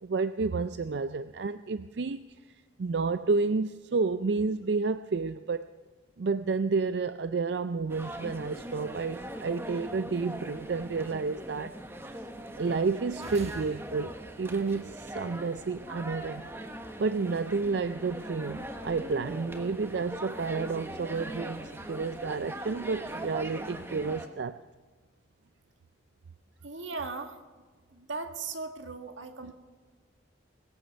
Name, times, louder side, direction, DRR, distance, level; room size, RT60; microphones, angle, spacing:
voice 1, 0.0-2.3 2.8-5.7 6.2-11.7 12.0-12.1 12.6-16.5 17.0-24.6 29.4-29.5, right 4 dB, 65° right, 12 dB, 0.4 m, -30 dB
sound 1, 7.9-24.3, right 1 dB, 15° right, 1.2 m, -41 dB
sound 2, 13.2-15.4, right 2 dB, 35° right, 1.3 m, -47 dB
voice 2, 26.6-27.4 27.9-29.5, right 4 dB, 90° right, 6 dB, 1.8 m, -38 dB
21.0 x 9.1 x 6.7 m, 1.4 s
head